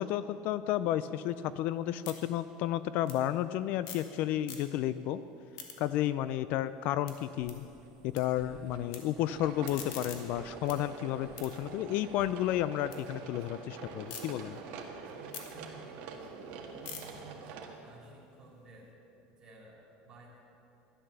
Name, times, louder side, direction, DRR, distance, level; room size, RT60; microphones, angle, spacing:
voice 1, 0.0-5.2 5.8-7.6 8.0-14.6, left 12 dB, 55° left, 14 dB, 0.3 m, -32 dB
sound 1, 1.2-4.1 4.4-5.0 5.3-8.2 8.5-9.0 9.4-13.0 13.4-14.2 14.7-18.8, left 7 dB, 75° left, 1.9 m, -49 dB
sound 2, 7.1-12.5, right 5 dB, 75° right, 1.6 m, -57 dB
voice 2, 8.3-9.4 14.3-16.3 16.6-17.4 17.8-18.9 19.3-20.4, right 2 dB, 20° right, -4 dB, 3.3 m, -54 dB
sound 3, 9.2-17.8, right 5 dB, 55° right, 1.6 m, -46 dB
12.5 x 11.0 x 6.8 m, 2.8 s
cardioid pair, 150°, 3 cm